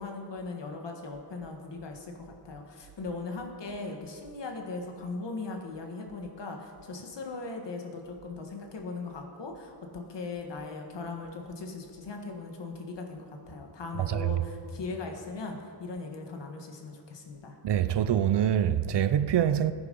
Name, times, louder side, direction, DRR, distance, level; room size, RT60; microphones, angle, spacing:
voice 1, 0.0-17.6, left 3 dB, 65° left, 1.8 m, -39 dB
voice 2, 14.0-14.3 17.6-19.7, right 10 dB, 65° right, 0.6 m, -25 dB
15.0 x 9.5 x 5.4 m
wide cardioid pair, 140°, 45 cm